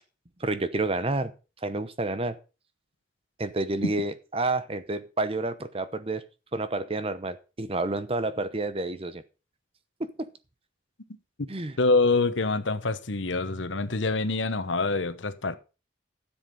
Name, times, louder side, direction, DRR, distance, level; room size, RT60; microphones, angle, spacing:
voice 1, 0.4-1.3 1.6-2.4 3.4-6.2 6.5-9.2 10.0-10.3 11.5-11.8, right 2 dB, 30° right, 0.9 m, -29 dB
voice 2, 11.8-15.6, left 3 dB, 90° left, 1.1 m, -25 dB
12.5 x 7.4 x 5.4 m
head